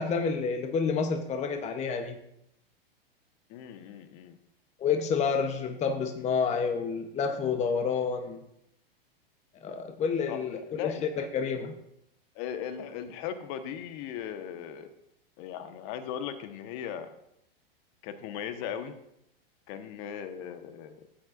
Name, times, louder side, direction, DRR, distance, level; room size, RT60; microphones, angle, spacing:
voice 1, 0.0-2.2 4.8-8.4 9.6-11.8, left 5 dB, 25° left, 6 dB, 0.9 m, -29 dB
voice 2, 3.5-4.4 10.3-11.1 12.3-14.9 15.4-17.1 18.0-19.0 19.7-21.1, left 8 dB, 50° left, 8 dB, 1.2 m, -38 dB
15.0 x 8.2 x 2.5 m, 0.78 s
hypercardioid pair, 110°, 29 cm